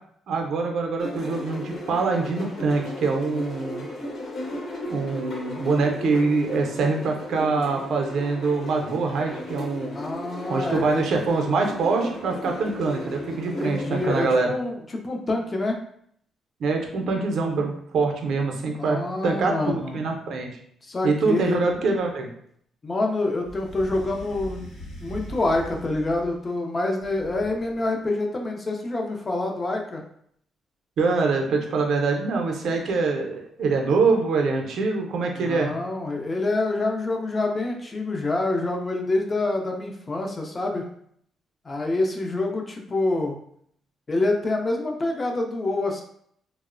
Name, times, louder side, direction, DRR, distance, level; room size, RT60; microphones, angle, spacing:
voice 1, 0.3-3.9 4.9-10.0 10.5-14.5 16.6-19.5 19.9-20.5 21.0-22.3 31.0-35.7, right 4 dB, 65° right, 2 dB, 0.5 m, -24 dB
sound 1, 1.0-14.3, left 1 dB, 55° left, 0.9 m, -35 dB
voice 2, 9.9-11.0 13.6-15.8 18.8-20.0 20.8-21.6 22.8-24.6 25.0-30.0 35.3-40.8 41.6-43.4 44.1-46.0, left 2 dB, 30° left, 2 dB, 0.5 m, -26 dB
sound 2, 23.4-26.5 27.0-27.9, right 1 dB, 90° left, 0.9 m, -40 dB
2.9 x 2.0 x 2.4 m, 0.67 s
cardioid pair, 90°, 0 cm